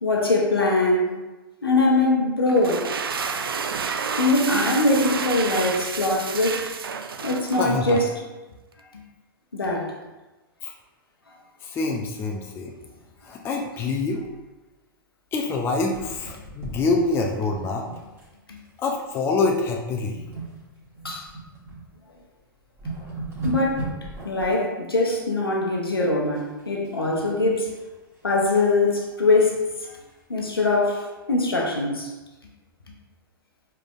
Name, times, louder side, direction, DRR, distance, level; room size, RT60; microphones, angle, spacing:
voice 1, 0.0-1.1 1.6-3.4 4.0-6.6 7.2-8.1 8.9-9.0 9.5-9.9 11.3-11.4 18.5-18.6 21.0-21.3 23.4-23.9 24.2-27.7 28.2-30.0 30.3-32.1, left 2 dB, 90° left, -1 dB, 0.8 m, -22 dB
sound 1, 2.5-8.1, right 6 dB, 80° right, 0.4 m, -30 dB
voice 2, 7.6-8.0 10.6-10.7 11.6-12.7 13.2-14.2 15.3-17.9 18.8-20.2, left 3 dB, 20° left, 0 dB, 0.4 m, -26 dB
sound 2, 15.9-18.3 18.6-18.8 19.3-19.6 19.9-21.8 22.3-22.4 22.6-24.5 26.3-26.9 27.3-28.7 29.2-29.3 29.6-29.7 30.1-30.2, right 2 dB, 20° right, 1.3 m, -37 dB
4.9 x 3.4 x 2.5 m, 1.1 s
figure-of-eight pair, 110°, 12 cm